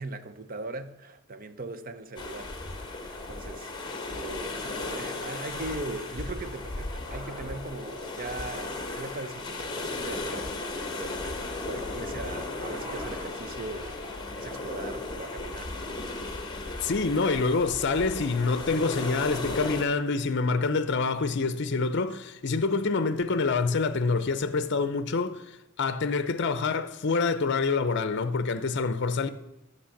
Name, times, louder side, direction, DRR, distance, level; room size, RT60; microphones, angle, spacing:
voice 1, 0.0-2.5 2.9-3.7 4.1-15.8, right 2 dB, 40° right, 0.6 m, -40 dB
sound 1, 2.2-19.8, left 2 dB, 20° left, 1.2 m, -36 dB
sound 2, 5.8-14.2, left 1 dB, 20° right, 2.8 m, -50 dB
voice 2, 16.8-25.5 25.8-29.3, left 4 dB, 55° left, 0.6 m, -26 dB
11.5 x 6.6 x 7.1 m
head